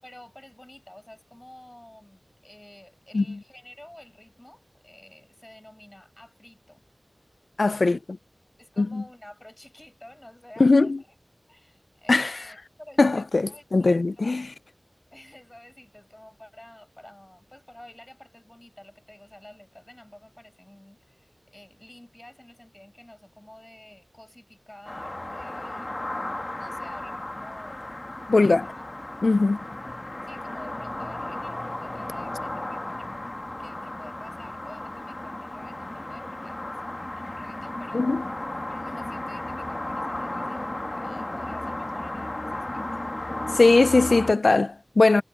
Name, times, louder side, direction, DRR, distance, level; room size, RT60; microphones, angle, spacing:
voice 1, 0.0-6.8 7.6-8.0 8.6-11.2 11.5-14.5 15.1-26.1 26.6-28.1 28.4-28.9 29.8-33.1 33.6-36.6 37.1-38.2 38.7-43.1, left 1 dB, 20° left, 6.9 m, -49 dB
voice 2, 7.6-8.0 8.8-9.0 10.6-11.0 12.1-12.4 13.0-14.5 28.3-28.6 29.2-29.6 37.9-38.2 43.6-45.2, left 3 dB, 80° left, 0.3 m, -20 dB
sound 1, 24.9-44.3, left 1 dB, 40° left, 1.2 m, -34 dB
wide cardioid pair, 55°, 0 cm